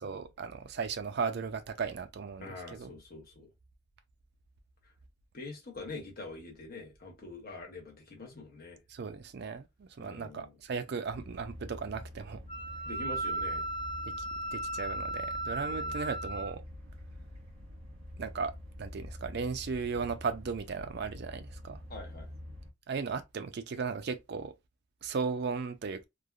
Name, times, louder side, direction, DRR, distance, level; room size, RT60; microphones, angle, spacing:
voice 1, 0.0-2.9 8.9-12.4 14.1-14.2 14.5-16.6 18.2-18.5 18.8-21.8 22.9-24.5 25.0-26.1, right 5 dB, 55° right, 0.4 m, -36 dB
voice 2, 2.4-3.5 5.3-8.8 10.0-10.5 12.8-13.6 15.6-16.0 21.9-22.3, left 3 dB, 50° left, 1.1 m, -45 dB
sound 1, 11.1-22.7, left 1 dB, 80° right, 1.2 m, -46 dB
Wind instrument woodwind instrument, 12.5-16.5, right 2 dB, 25° left, 0.6 m, -36 dB
3.2 x 2.1 x 2.4 m
head